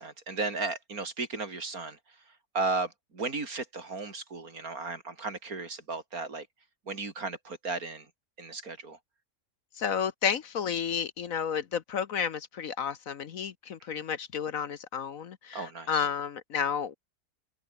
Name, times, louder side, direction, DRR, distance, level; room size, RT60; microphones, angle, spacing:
voice 1, 0.0-2.0 2.5-6.5 6.9-8.1 8.4-9.0 13.9-14.0 15.5-16.1, right 3 dB, 60° right, 3.9 m, -35 dB
voice 2, 9.8-17.0, left 7 dB, 60° left, 1.3 m, -31 dB
open air
omnidirectional pair, 1.7 m